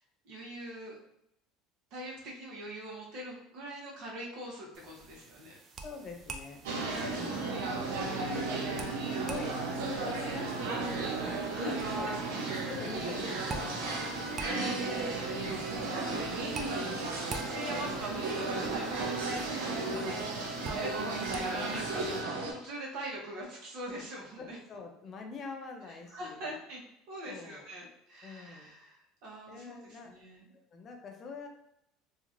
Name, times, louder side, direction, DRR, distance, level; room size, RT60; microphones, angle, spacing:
voice 1, 0.2-1.0 1.9-5.5 6.7-7.3 11.5-11.7 14.4-15.8 16.4-19.1 19.6-20.9 21.3-24.6 25.9-26.8 27.1-30.5, right 1 dB, 70° right, -3 dB, 1.0 m, -43 dB
sound 1, 4.7-22.2, right 3 dB, 35° right, 0.4 m, -48 dB
voice 2, 5.8-6.6 7.1-7.5 7.8-14.8 15.4-15.9 24.4-26.5 27.2-27.7 28.2-28.7 29.5-30.2 30.7-31.5, left 4 dB, 40° left, 2 dB, 0.5 m, -45 dB
sound 2, 6.6-22.5, right 3 dB, 85° right, 0.6 m, -34 dB
3.0 x 2.4 x 2.5 m, 0.78 s
supercardioid pair, 110°, 0 cm